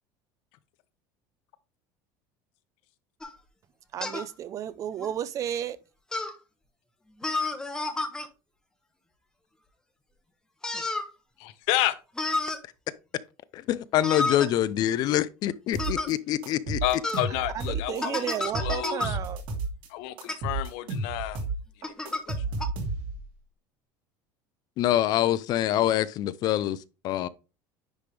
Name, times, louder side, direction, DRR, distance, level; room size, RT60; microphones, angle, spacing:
sound 1, 3.2-3.4 4.0-4.3 5.0-5.1 6.1-6.4 7.2-8.3 10.6-11.1 12.2-12.6 14.0-14.5 15.8-16.1 17.0-17.3 18.0-19.1 20.2-20.3 21.8-22.3 22.6-22.7, left 2 dB, 5° left, 0.9 m, -30 dB
voice 1, 3.9-5.8 17.5-19.4, right 10 dB, 35° right, 0.4 m, -33 dB
voice 2, 11.4-12.0 16.8-19.2 19.9-21.4 21.8-22.4, left 15 dB, 70° left, 0.7 m, -30 dB
voice 3, 13.5-16.8 24.8-26.8 27.0-27.3, left 12 dB, 45° left, 0.4 m, -25 dB
sound 2, 15.7-16.1 16.4-18.0 18.3-19.9 20.2-23.3, right 3 dB, 60° right, 2.6 m, -32 dB
9.9 x 3.4 x 3.3 m
cardioid pair, 145°, 10 cm